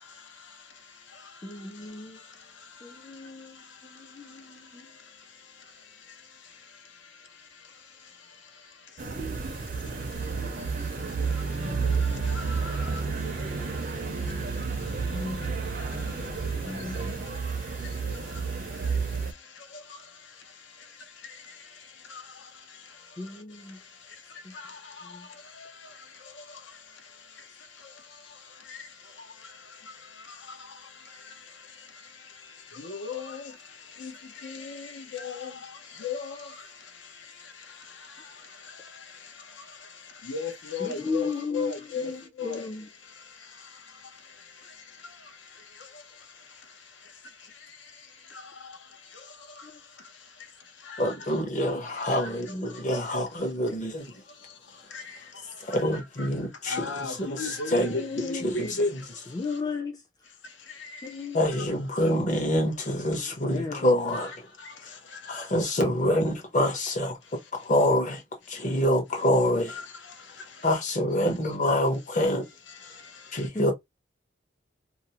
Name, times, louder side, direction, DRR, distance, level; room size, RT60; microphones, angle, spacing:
voice 1, 1.4-2.2 2.8-4.9 15.0-15.5 15.9-16.2 16.6-17.3 23.2-23.8 25.1-25.3 40.8-42.9 43.4-43.5 49.6-49.7 57.8-58.6 59.3-60.0 61.0-61.4 63.5-63.9 73.5-73.7, left 4 dB, 20° left, 0.4 m, -35 dB
sound 1, 9.0-19.3, right 4 dB, 45° right, 0.5 m, -31 dB
voice 2, 12.3-13.0 17.0-17.1 22.1-22.2 24.5-24.8 25.6-25.7 28.7-28.8 32.7-33.5 34.0-34.1 34.4-35.6 36.0-36.6 40.2-42.1 42.4-42.7 50.9-51.1 52.0-52.3 54.9-55.0 56.2-56.3 56.7-58.9 60.8-61.1 64.1-64.4 64.6-64.7 69.7-69.9, left 4 dB, 75° left, 0.7 m, -34 dB
voice 3, 51.0-54.1 55.6-56.9 57.3-57.4 57.7-58.0 58.4-58.7 61.3-64.3 65.3-67.2 67.5-68.2 68.5-69.8 70.6-72.4 73.3-73.7, left 1 dB, 40° left, 0.8 m, -26 dB
2.5 x 2.0 x 2.8 m
head